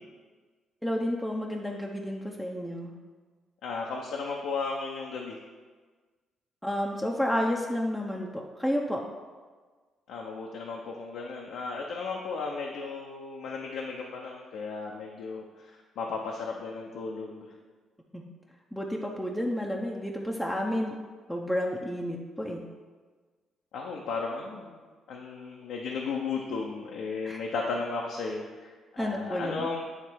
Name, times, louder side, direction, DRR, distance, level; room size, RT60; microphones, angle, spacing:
voice 1, 0.8-2.9 6.6-9.0 18.1-18.2 18.7-20.9 21.3-22.6 27.2-27.4 29.0-29.7, equal, ahead, -2 dB, 0.7 m, -31 dB
voice 2, 3.6-5.3 10.1-17.5 23.7-24.8 25.1-29.8, left 4 dB, 80° left, -1 dB, 0.7 m, -35 dB
9.5 x 3.2 x 4.6 m, 1.4 s
cardioid pair, 85°, 0 cm